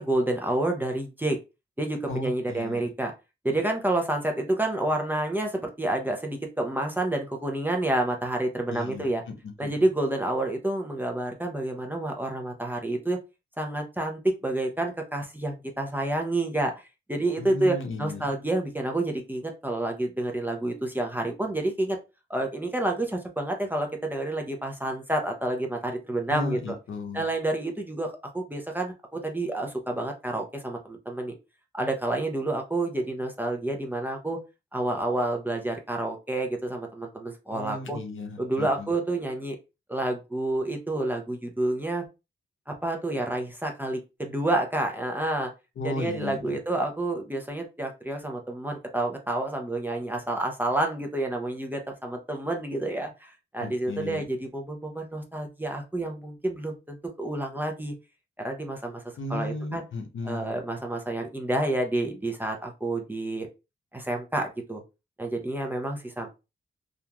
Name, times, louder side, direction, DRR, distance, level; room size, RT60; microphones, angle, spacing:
voice 1, 0.0-1.4 1.8-3.1 3.4-9.2 9.6-13.2 13.6-16.7 17.1-22.0 22.3-26.6 27.1-31.3 31.7-34.4 34.7-38.0 38.4-39.6 39.9-42.0 42.7-45.5 45.8-57.9 58.4-59.0 59.3-59.8 60.2-63.5 63.9-64.8 65.2-66.3, right 1 dB, 10° right, 2 dB, 0.5 m, -29 dB
voice 2, 2.1-2.8 8.7-9.7 17.4-18.2 26.3-27.3 37.5-38.9 45.8-46.6 53.6-54.2 59.2-60.5, left 2 dB, 70° left, 4 dB, 0.7 m, -35 dB
2.9 x 2.5 x 2.2 m, 0.27 s
wide cardioid pair, 110°, 21 cm